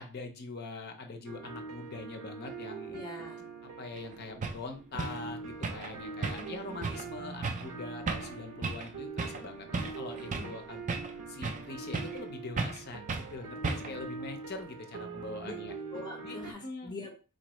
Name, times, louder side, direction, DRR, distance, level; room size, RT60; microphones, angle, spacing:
voice 1, 0.0-3.0 3.8-9.7 10.0-10.8 11.3-15.7 16.2-17.0, left 3 dB, 45° left, 5 dB, 0.6 m, -43 dB
sound 1, 1.3-16.5, right 4 dB, 90° right, 0.6 m, -43 dB
voice 2, 2.9-3.4 6.2-6.8 10.2-10.5 15.4-15.5 15.9-17.1, left 2 dB, 20° left, 0 dB, 1.0 m, -44 dB
sound 2, 4.0-4.1 4.4-4.6 5.0-5.2 5.6-5.9 6.2-6.6 6.8-7.1 7.4-7.7 8.1-8.3 8.6-8.9 9.2-9.4 9.7-10.6 10.9-11.7 11.9-12.2 12.6-12.8 13.1-13.3 13.6-14.0, right 4 dB, 35° right, 0.4 m, -34 dB
4.1 x 2.5 x 3.1 m, 0.34 s
head